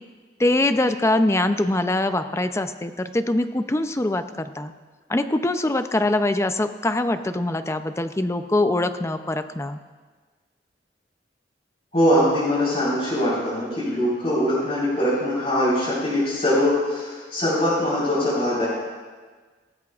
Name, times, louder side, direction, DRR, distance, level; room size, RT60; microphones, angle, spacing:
voice 1, 0.4-4.7 5.1-9.8, left 2 dB, 15° left, 9 dB, 0.5 m, -23 dB
voice 2, 11.9-18.7, left 1 dB, 35° left, -10 dB, 4.3 m, -22 dB
18.0 x 14.5 x 2.4 m, 1.4 s
head